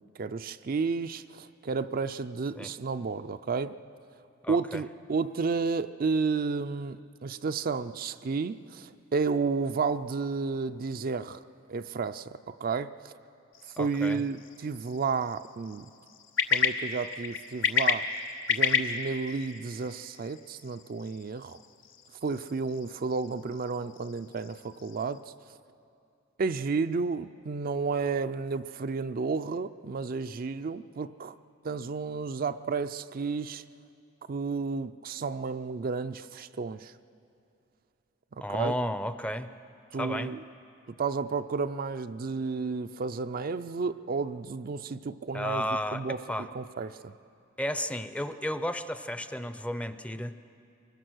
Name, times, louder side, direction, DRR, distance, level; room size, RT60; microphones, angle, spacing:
voice 1, 0.2-3.8 4.5-11.4 11.7-13.1 13.8-15.9 16.5-18.1 18.5-21.6 22.2-25.3 26.4-31.4 31.6-33.6 34.3-36.9 38.5-38.7 39.9-40.4 41.0-46.2 46.5-47.1, right 4 dB, 50° right, 10 dB, 0.4 m, -32 dB
voice 2, 4.4-4.8 13.8-14.2 38.4-39.5 39.9-40.4 45.3-46.5 47.6-50.3, equal, 5° left, 11 dB, 0.5 m, -33 dB
sound 1, 13.5-25.2, left 6 dB, 85° left, 1.1 m, -33 dB
23.5 x 21.0 x 6.2 m, 2.6 s
head